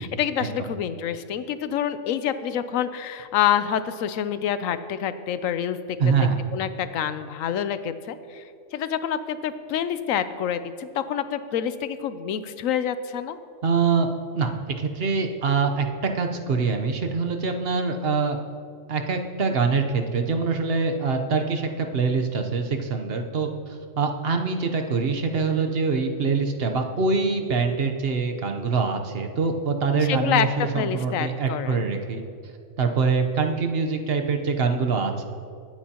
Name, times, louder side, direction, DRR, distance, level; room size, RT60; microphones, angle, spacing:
voice 1, 0.0-5.8 6.5-8.4 8.7-13.4 30.0-31.9, left 9 dB, 80° left, 12 dB, 1.0 m, -27 dB
voice 2, 6.0-6.4 13.6-14.1 14.3-14.5 14.8-18.4 18.9-32.2 32.8-35.2, right 4 dB, 50° right, 4 dB, 1.1 m, -24 dB
21.5 x 9.3 x 2.9 m, 2.5 s
omnidirectional pair, 1.4 m